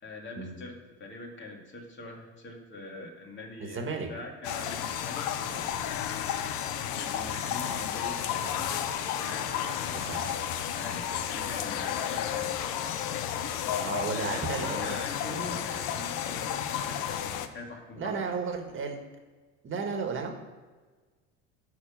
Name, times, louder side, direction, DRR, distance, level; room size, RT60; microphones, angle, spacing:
voice 1, 0.0-5.8 6.9-10.1 10.7-12.6 14.1-18.2, left 2 dB, 35° left, 0 dB, 2.7 m, -43 dB
voice 2, 3.6-4.1 9.9-10.3 13.8-15.0 18.0-19.0 19.6-20.3, right 5 dB, 35° right, 3 dB, 1.8 m, -33 dB
sound 1, 4.4-17.5, left 9 dB, 65° left, 1.0 m, -32 dB
10.5 x 4.4 x 7.5 m, 1.3 s
hypercardioid pair, 90°, 34 cm